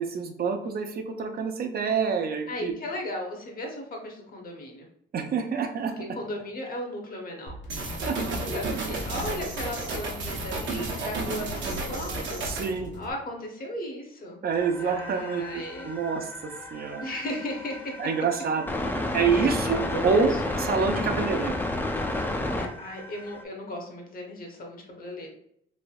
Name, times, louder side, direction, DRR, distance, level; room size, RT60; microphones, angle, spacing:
voice 1, 0.0-2.7 5.1-5.9 8.1-8.2 12.4-12.9 14.4-17.1 18.0-21.6, right 5 dB, 50° right, 5 dB, 0.5 m, -27 dB
voice 2, 2.5-4.9 6.0-12.5 12.9-14.4 14.8-16.0 17.0-18.0 19.3-19.6 19.9-20.3 22.5-25.3, left 1 dB, 45° left, 1 dB, 0.9 m, -36 dB
sound 1, 7.5-13.1, equal, 65° left, 1.3 m, -44 dB
sound 2, 7.7-12.7, right 2 dB, 65° right, 0.8 m, -32 dB
sound 3, 14.5-23.4, left 1 dB, 10° left, 0.4 m, -32 dB
3.2 x 2.6 x 2.3 m, 0.71 s
cardioid pair, 90°, 20 cm